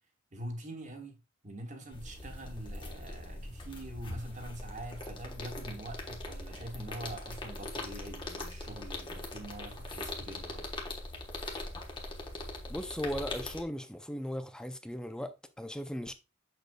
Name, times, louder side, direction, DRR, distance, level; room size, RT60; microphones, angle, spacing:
voice 1, 0.3-10.6, right 1 dB, 40° right, 1.4 m, -44 dB
sound 1, 1.9-13.6, left 2 dB, 25° left, 1.1 m, -41 dB
voice 2, 12.7-16.1, equal, 5° left, 0.5 m, -37 dB
6.6 x 6.6 x 2.3 m
head